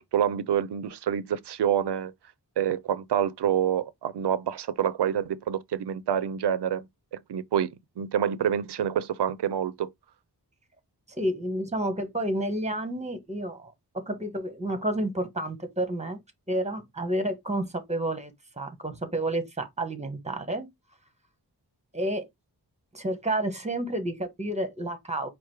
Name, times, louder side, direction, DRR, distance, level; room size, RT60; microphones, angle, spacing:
voice 1, 0.0-2.1 2.6-6.9 7.1-7.7 8.0-9.9, right 9 dB, 75° right, 0.5 m, -27 dB
voice 2, 11.2-16.2 16.5-20.7 21.9-22.3 22.9-25.3, right 1 dB, 15° right, 1.0 m, -30 dB
4.7 x 2.0 x 4.5 m
wide cardioid pair, 110°, 41 cm